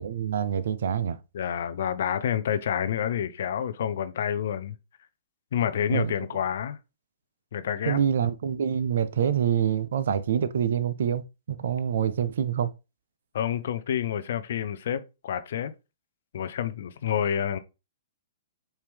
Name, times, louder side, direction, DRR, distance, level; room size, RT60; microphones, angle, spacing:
voice 1, 0.0-1.2 5.9-6.1 7.9-12.7, right 8 dB, 65° right, 0.5 m, -26 dB
voice 2, 1.3-4.7 5.5-6.8 7.5-8.0 13.3-15.7 16.3-17.6, left 9 dB, 60° left, 0.5 m, -28 dB
4.6 x 2.9 x 3.4 m
hypercardioid pair, 120°, 0 cm